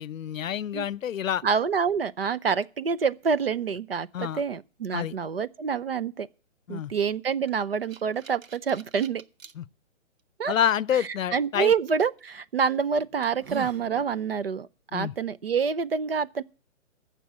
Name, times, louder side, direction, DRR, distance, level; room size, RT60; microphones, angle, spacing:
voice 1, 0.0-1.4 4.1-4.4 4.9-5.2 6.7-6.9 9.6-9.7 10.5-11.7 14.9-15.1, left 9 dB, 85° left, 0.7 m, -28 dB
voice 2, 1.4-6.3 6.7-9.2 10.4-10.5 11.3-16.4, right 6 dB, 50° right, 0.7 m, -27 dB
sound 1, 7.5-9.5 10.2-10.3 12.0-12.2 12.8-12.9 13.2-13.9, right 8 dB, 80° right, 1.2 m, -43 dB
14.5 x 6.9 x 7.4 m
hypercardioid pair, 175°, 39 cm